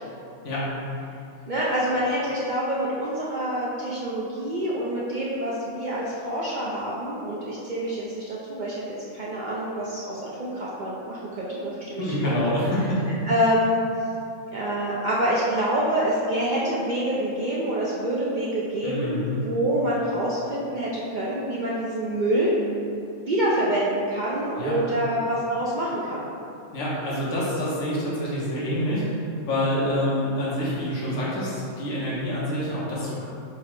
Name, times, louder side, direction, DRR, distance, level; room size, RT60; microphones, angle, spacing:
voice 1, 1.5-8.8 9.1-12.4 13.3-13.8 14.5-22.5 23.2-26.3, right 1 dB, 60° right, -7 dB, 0.5 m, -26 dB
voice 2, 12.0-13.0 18.8-19.4 24.6-24.7 26.7-29.0 29.5-33.3, left 1 dB, 75° left, -8 dB, 1.2 m, -26 dB
4.6 x 2.0 x 4.5 m, 2.6 s
omnidirectional pair, 1.3 m